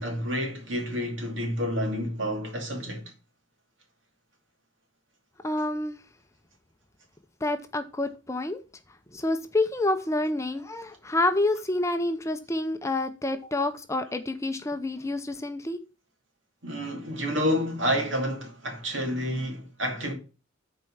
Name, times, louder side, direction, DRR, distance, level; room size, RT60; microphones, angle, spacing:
voice 1, 0.0-3.1 16.6-20.1, equal, 70° right, 2.5 m, -29 dB
voice 2, 5.4-6.0 7.4-8.6 9.1-15.8, left 2 dB, 15° left, 0.6 m, -28 dB
7.8 x 4.6 x 5.5 m
head